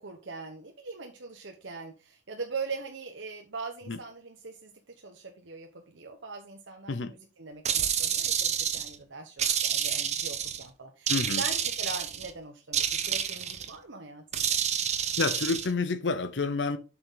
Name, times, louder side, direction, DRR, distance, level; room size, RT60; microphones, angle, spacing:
voice 1, 0.0-4.7 5.0-14.5, right 4 dB, 80° right, 1.1 m, -41 dB
sound 1, 7.7-9.0 9.4-10.6 11.1-12.3 12.7-13.7 14.3-15.7, right 8 dB, 35° right, 0.8 m, -29 dB
voice 2, 11.1-11.4 15.2-16.8, left 4 dB, 70° left, 0.7 m, -29 dB
7.7 x 6.2 x 3.9 m
head